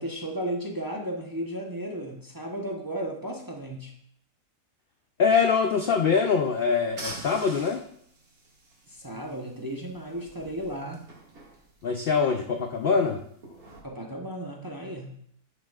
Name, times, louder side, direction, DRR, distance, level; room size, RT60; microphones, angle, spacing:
voice 1, 0.0-3.9 8.9-11.0 13.8-15.1, right 1 dB, 20° right, 0 dB, 0.7 m, -34 dB
voice 2, 5.2-7.8 11.8-13.2, left 5 dB, 65° left, 4 dB, 0.5 m, -23 dB
sound 1, 5.5-13.8, right 2 dB, 75° right, 2.5 m, -47 dB
11.0 x 6.7 x 2.4 m, 0.69 s
omnidirectional pair, 1.6 m